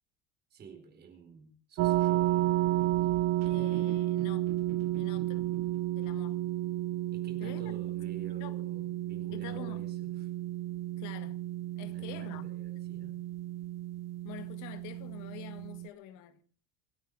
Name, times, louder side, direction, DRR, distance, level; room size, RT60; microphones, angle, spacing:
voice 1, 0.5-2.3 3.0-3.2 7.1-10.3 11.8-13.1, right 6 dB, 30° right, 4.5 m, -50 dB
sound 1, 1.8-15.9, right 16 dB, 55° right, 0.7 m, -32 dB
voice 2, 3.4-4.5 5.0-5.5 5.9-6.4 7.4-7.6 8.2-8.6 9.3-9.8 11.0-11.4 11.8-12.5 14.2-16.4, left 13 dB, 60° left, 2.0 m, -47 dB
27.5 x 9.5 x 4.9 m
cardioid pair, 170°, 33 cm